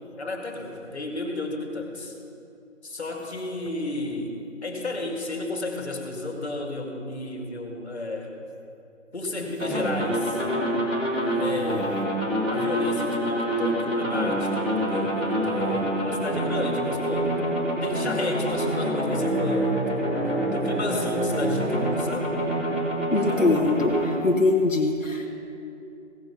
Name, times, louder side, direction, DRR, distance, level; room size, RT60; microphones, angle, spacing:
voice 1, 0.2-2.2 2.8-4.4 4.6-8.4 9.1-10.4 11.4-11.9 12.5-17.4 17.8-20.1 20.5-22.3, left 2 dB, 55° left, 2 dB, 2.1 m, -32 dB
sound 1, 9.6-24.0, right 1 dB, 5° right, 1.1 m, -26 dB
voice 2, 23.1-25.3, left 3 dB, 85° left, 0 dB, 1.4 m, -23 dB
16.5 x 7.9 x 5.7 m, 2.7 s
figure-of-eight pair, 160°, 38 cm